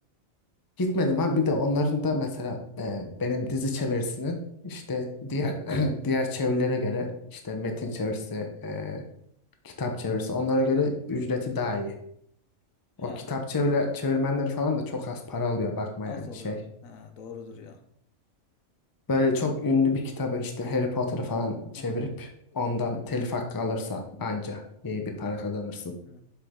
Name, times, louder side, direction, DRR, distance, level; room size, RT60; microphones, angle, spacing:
voice 1, 0.8-4.4 4.6-9.0 9.6-11.9 13.0-16.6 19.1-25.9, left 2 dB, 20° left, 4 dB, 0.6 m, -28 dB
voice 2, 13.0-13.3 16.0-17.8 21.8-22.0 26.0-26.2, left 6 dB, 80° left, 6 dB, 1.2 m, -44 dB
6.1 x 5.6 x 3.7 m, 0.72 s
omnidirectional pair, 1.4 m